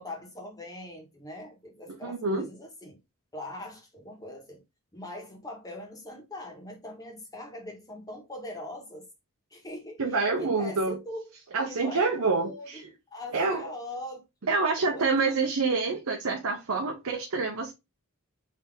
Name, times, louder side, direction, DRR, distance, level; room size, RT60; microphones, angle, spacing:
voice 1, 0.0-3.0 3.3-4.6 4.9-9.1 9.5-11.3 11.6-12.8 13.1-15.1, left 1 dB, 15° left, 1.2 m, -42 dB
voice 2, 2.0-2.5 10.0-11.0 11.5-12.9 13.3-13.6 14.4-17.7, right 4 dB, 70° right, 0.7 m, -27 dB
3.9 x 2.8 x 3.3 m
head